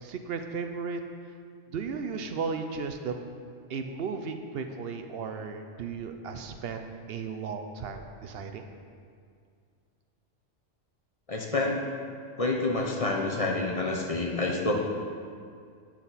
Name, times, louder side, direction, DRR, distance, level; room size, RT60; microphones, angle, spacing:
voice 1, 0.0-1.0 1.7-3.2 3.7-8.6, right 5 dB, 65° right, 6 dB, 0.7 m, -35 dB
voice 2, 11.3-11.8 12.4-14.7, left 2 dB, 35° left, -1 dB, 0.7 m, -28 dB
8.9 x 5.9 x 4.1 m, 2.3 s
omnidirectional pair, 1.3 m